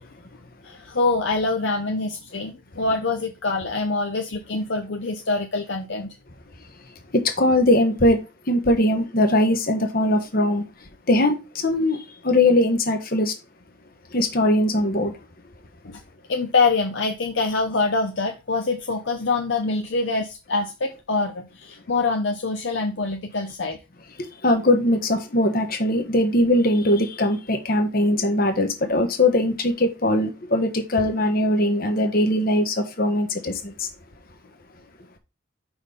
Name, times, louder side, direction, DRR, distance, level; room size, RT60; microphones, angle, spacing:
voice 1, 0.6-6.2 15.8-16.0 16.3-23.8, left 3 dB, 60° left, 0.7 m, -25 dB
voice 2, 7.1-8.2 8.5-10.6 11.1-13.3 14.1-15.2 24.2-33.9, left 1 dB, 45° left, 1.2 m, -21 dB
5.4 x 4.4 x 5.1 m
head